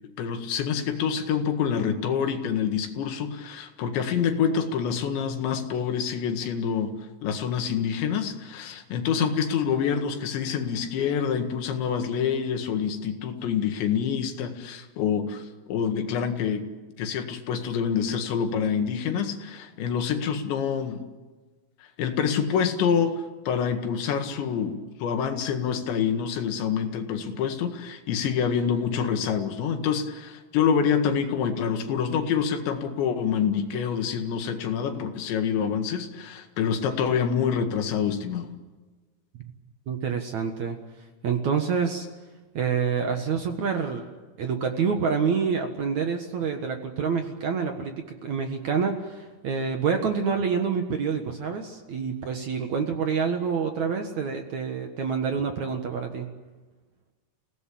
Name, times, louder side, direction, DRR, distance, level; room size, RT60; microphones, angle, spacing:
voice 1, 0.2-6.9 7.2-16.6 17.0-21.0 22.0-38.5, left 7 dB, 85° left, 6 dB, 4.2 m, -26 dB
voice 2, 39.9-40.8 41.2-42.1 42.5-44.1 44.4-56.3, right 6 dB, 55° right, 5 dB, 2.2 m, -27 dB
29.0 x 18.0 x 8.6 m, 1.3 s
omnidirectional pair, 5.0 m